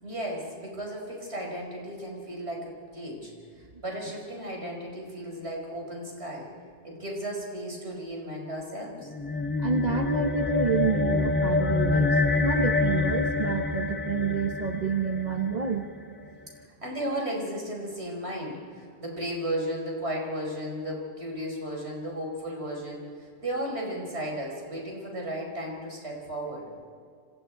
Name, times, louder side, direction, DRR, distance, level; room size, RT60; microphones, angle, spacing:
voice 1, 0.0-3.3 3.8-6.5 6.8-9.1 16.8-26.6, right 1 dB, 70° right, -1 dB, 5.6 m, -34 dB
sound 1, 9.1-15.7, left 3 dB, 15° left, 0.5 m, -26 dB
voice 2, 9.6-15.8, right 5 dB, 40° right, 5 dB, 1.1 m, -28 dB
28.0 x 26.0 x 4.6 m, 2.2 s
omnidirectional pair, 1.1 m